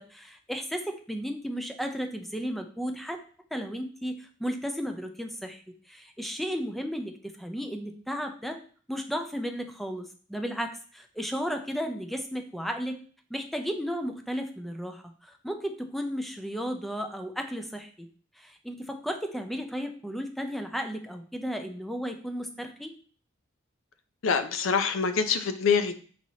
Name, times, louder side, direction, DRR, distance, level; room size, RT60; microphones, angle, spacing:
voice 1, 0.0-3.2 3.5-8.6 8.9-13.0 13.3-18.1 18.4-22.9, equal, ahead, 5 dB, 0.5 m, -34 dB
voice 2, 24.2-25.9, left 6 dB, 85° left, 9 dB, 0.5 m, -25 dB
4.6 x 4.1 x 2.8 m, 0.42 s
head